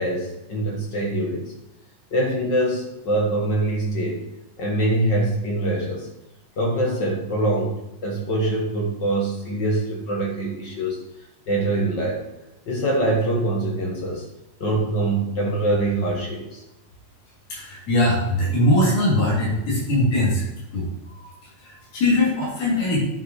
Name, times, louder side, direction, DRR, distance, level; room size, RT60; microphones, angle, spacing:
voice 1, 0.0-1.4 2.1-4.2 4.6-6.1 6.6-7.7 8.0-11.0 11.5-12.2 12.7-14.2 14.6-16.6, right 1 dB, 45° left, 0 dB, 1.6 m, -24 dB
voice 2, 17.5-20.4 20.7-21.3 21.6-23.0, left 1 dB, 80° left, -7 dB, 5.0 m, -21 dB
10.0 x 5.9 x 4.7 m, 0.95 s
omnidirectional pair, 3.6 m